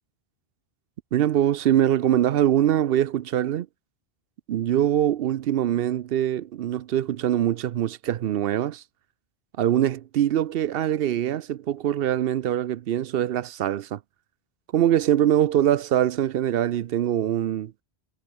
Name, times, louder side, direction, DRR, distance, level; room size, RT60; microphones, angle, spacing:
voice 1, 1.1-3.7 4.5-8.8 9.6-14.0 14.7-17.7, right 11 dB, 70° right, 0.7 m, -23 dB
omnidirectional pair, 1.1 m